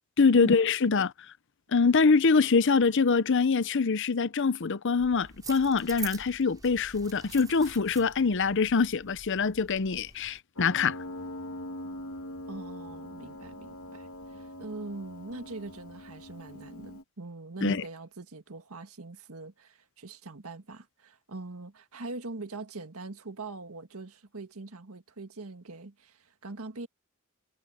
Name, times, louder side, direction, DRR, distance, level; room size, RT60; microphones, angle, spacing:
voice 1, 0.2-1.1 1.7-11.0 17.6-17.8, left 4 dB, 60° left, 0.7 m, -24 dB
sound 1, 5.0-10.4, right 5 dB, 15° right, 4.1 m, -46 dB
Piano, 10.6-17.0, left 1 dB, 85° left, 3.2 m, -42 dB
voice 2, 12.5-26.9, right 3 dB, 85° right, 1.8 m, -42 dB
head